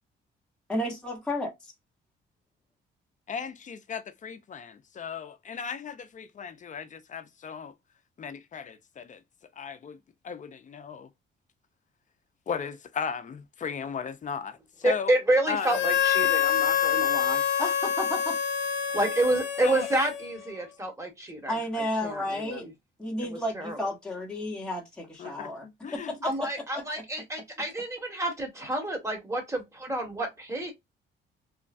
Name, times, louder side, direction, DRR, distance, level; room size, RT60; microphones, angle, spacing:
voice 1, 0.7-1.5 17.6-18.4 21.5-22.7 23.0-27.0, left 1 dB, 5° left, 1.0 m, -32 dB
voice 2, 3.3-7.7 8.2-9.2 9.6-10.0 10.2-11.1 12.5-15.1 15.5-15.7 19.6-19.9 25.2-26.1, left 6 dB, 40° left, 0.5 m, -36 dB
voice 3, 14.8-17.4 18.9-21.5 22.0-22.7 23.2-23.8 25.2-25.3 26.2-30.7, right 1 dB, 15° right, 1.4 m, -29 dB
Harmonica, 15.6-20.5, left 9 dB, 65° left, 0.8 m, -26 dB
3.1 x 2.3 x 2.5 m
cardioid pair, 90°, 20 cm